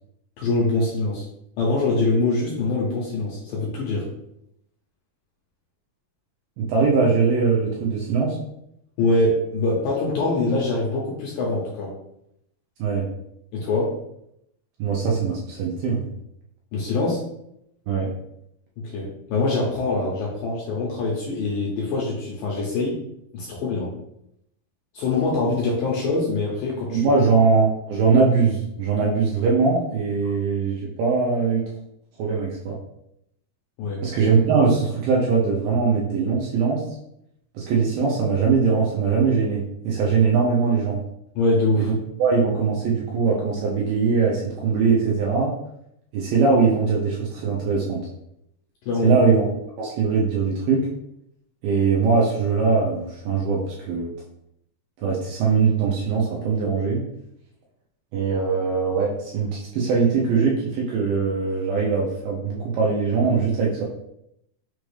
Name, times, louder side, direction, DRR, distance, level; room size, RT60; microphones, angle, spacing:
voice 1, 0.4-1.3 1.6-4.1 9.0-12.0 13.5-13.9 16.7-17.2 18.8-23.0 23.3-23.9 24.9-27.1 30.2-30.4 33.8-34.0 41.4-41.9 48.9-49.2, left 2 dB, 75° left, -4 dB, 2.1 m, -24 dB
voice 2, 6.6-8.4 12.8-13.1 14.8-16.1 17.9-18.1 26.9-31.7 32.2-32.8 34.0-36.8 37.6-41.0 41.8-41.9 42.2-45.5 46.1-48.1 49.0-49.5 49.8-50.9 51.6-54.1 55.0-57.1 58.1-63.8, right 5 dB, 80° right, -3 dB, 2.1 m, -21 dB
6.2 x 2.4 x 3.2 m, 0.78 s
omnidirectional pair, 4.7 m